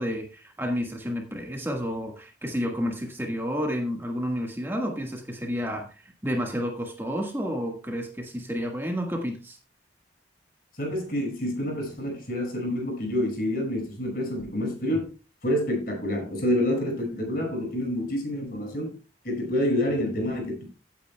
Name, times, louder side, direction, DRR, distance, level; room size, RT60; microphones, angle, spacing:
voice 1, 0.0-9.6, equal, 10° right, 2 dB, 1.4 m, -30 dB
voice 2, 10.8-15.1 15.4-19.0 19.2-20.6, left 1 dB, 50° left, 2 dB, 5.4 m, -28 dB
16.0 x 8.9 x 2.2 m, 0.33 s
head